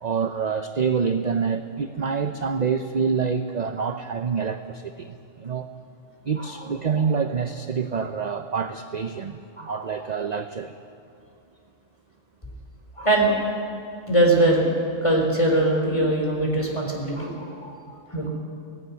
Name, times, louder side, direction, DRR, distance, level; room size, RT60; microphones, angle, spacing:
voice 1, 0.0-5.7 6.2-10.7, right 6 dB, 45° right, 8 dB, 0.7 m, -27 dB
voice 2, 9.6-9.9 13.0-13.6 14.1-14.7 15.0-17.8 18.1-18.3, right 1 dB, 25° left, 0 dB, 4.1 m, -22 dB
17.5 x 16.5 x 9.7 m, 2.6 s
omnidirectional pair, 1.3 m